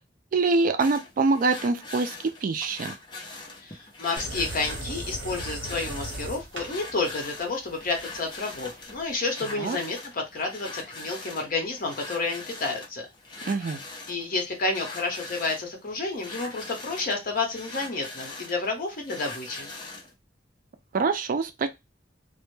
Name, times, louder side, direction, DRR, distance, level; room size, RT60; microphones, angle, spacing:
voice 1, 0.3-2.1 2.4-2.9 9.5-9.8 13.5-13.8 20.9-21.7, right 4 dB, 45° right, 0.3 m, -24 dB
sound 1, 0.8-20.1, left 3 dB, 25° left, 0.6 m, -42 dB
voice 2, 3.6-13.1 14.1-19.7, left 3 dB, 50° left, 0.8 m, -30 dB
sound 2, 4.2-9.2, right 1 dB, 75° right, 0.8 m, -38 dB
2.1 x 2.1 x 3.1 m
head